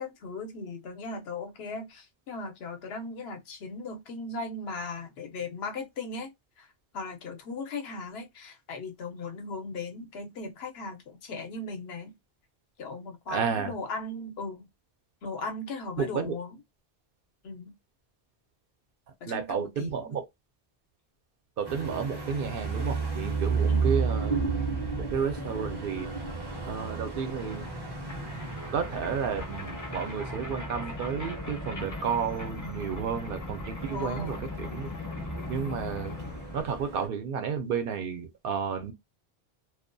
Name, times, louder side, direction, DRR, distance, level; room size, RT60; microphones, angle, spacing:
voice 1, 0.0-6.7 6.9-12.1 12.8-14.7 15.2-16.6 17.4-17.7 19.2-20.2 23.7-24.0 33.9-34.5, left 3 dB, 85° left, 0.9 m, -38 dB
voice 2, 13.3-13.7 16.0-16.3 19.2-20.2 21.6-24.6 24.9-26.1 26.7-27.7 28.7-34.9 35.5-36.1 36.5-38.9, right 6 dB, 65° right, 0.7 m, -32 dB
sound 1, 21.6-37.1, right 4 dB, 30° right, 0.5 m, -34 dB
sound 2, 25.5-25.6 25.7-36.6, left 2 dB, 25° left, 0.5 m, -40 dB
2.3 x 2.2 x 2.5 m
omnidirectional pair, 1.0 m